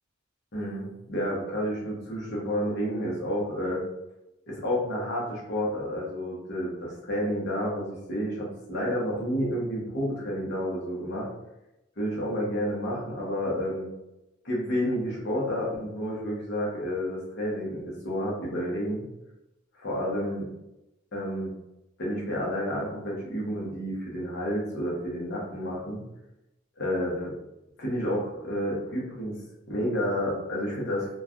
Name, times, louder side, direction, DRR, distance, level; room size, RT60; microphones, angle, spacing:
voice 1, 0.5-3.8 4.5-11.3 12.0-13.9 14.4-19.0 19.7-20.5 21.1-21.5 22.0-26.0 26.8-27.3 27.8-29.4 29.7-31.1, equal, 60° left, -4 dB, 0.9 m, -30 dB
3.1 x 2.3 x 2.4 m, 0.92 s
head